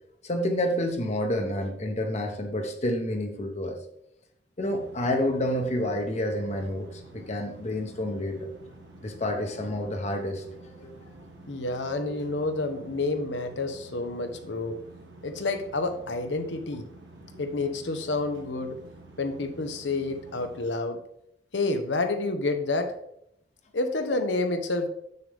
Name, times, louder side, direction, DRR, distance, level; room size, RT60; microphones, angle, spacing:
voice 1, 0.2-3.8 4.6-8.5 9.0-10.9 12.1-12.2 17.3-17.4, left 1 dB, 40° left, 4 dB, 0.9 m, -29 dB
sound 1, 4.6-20.7, right 2 dB, 90° right, 1.4 m, -49 dB
voice 2, 11.5-14.8 15.2-16.8 17.4-18.7 19.2-21.0 21.5-22.9 23.7-24.9, left 2 dB, 90° left, 7 dB, 0.9 m, -29 dB
6.8 x 6.7 x 3.5 m, 0.74 s
head